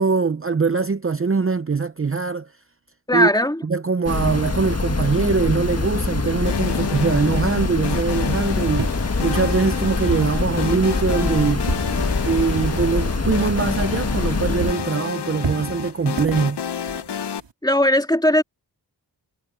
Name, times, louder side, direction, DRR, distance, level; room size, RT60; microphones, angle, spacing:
voice 1, 0.0-2.5 3.1-3.3 3.6-8.9 9.2-11.7 12.2-16.6, right 5 dB, 30° right, 0.8 m, -22 dB
voice 2, 3.1-3.6 17.6-18.4, left 1 dB, 10° left, 2.6 m, -18 dB
sound 1, 4.1-14.7, left 3 dB, 35° left, 1.6 m, -24 dB
sound 2, 6.5-17.4, left 8 dB, 70° left, 0.9 m, -30 dB
sound 3, 8.7-14.3 14.6-17.5, right 5 dB, 85° right, 5.0 m, -32 dB
cardioid pair, 55°, 43 cm